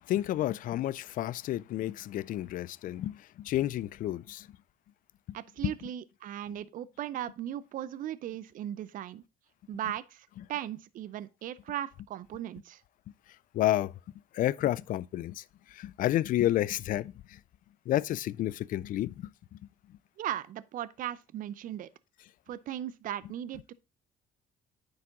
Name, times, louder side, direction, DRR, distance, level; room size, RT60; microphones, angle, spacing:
voice 1, 0.0-4.5 5.6-5.7 13.3-13.9 14.3-17.4 17.9-19.6 19.9-20.0, left 13 dB, 55° left, 0.4 m, -31 dB
voice 2, 5.3-9.2 9.7-12.8 20.2-21.9 22.5-23.7, right 11 dB, 55° right, 0.5 m, -37 dB
9.5 x 4.8 x 3.6 m
cardioid pair, 110°, 17 cm